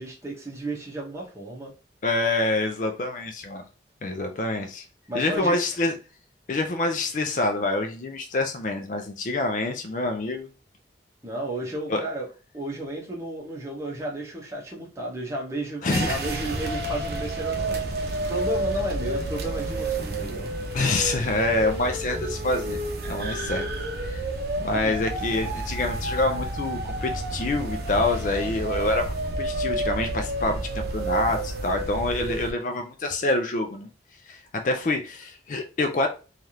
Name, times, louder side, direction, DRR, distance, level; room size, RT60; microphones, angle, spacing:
voice 1, 0.0-1.7 5.1-5.6 11.2-12.3 12.5-20.5 24.7-25.0, right 1 dB, 15° right, -3 dB, 0.8 m, -33 dB
voice 2, 2.0-3.6 4.0-4.8 5.1-5.9 6.5-10.5 11.9-12.0 15.8-16.2 20.7-22.8 23.0-23.6 24.0-24.3 24.6-33.9 34.3-36.1, left 2 dB, 45° left, 5 dB, 0.4 m, -26 dB
sound 1, 15.9-32.5, right 2 dB, 55° right, 0.6 m, -30 dB
3.3 x 2.4 x 2.8 m, 0.33 s
head